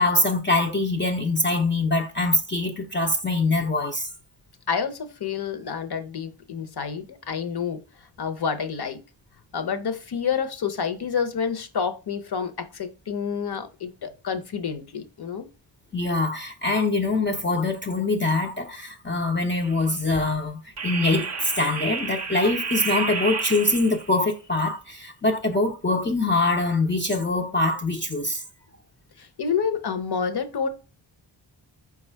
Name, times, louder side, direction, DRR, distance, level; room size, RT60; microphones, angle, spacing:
voice 1, 0.0-4.1 15.9-28.4, left 2 dB, 25° left, 0.5 m, -24 dB
voice 2, 4.7-7.8 8.2-9.0 9.5-15.5 29.2-30.7, left 6 dB, 55° left, 0.8 m, -28 dB
sound 1, 19.6-19.9 20.8-24.1, right 4 dB, 35° right, 0.5 m, -31 dB
4.8 x 2.4 x 4.4 m
wide cardioid pair, 105°, 47 cm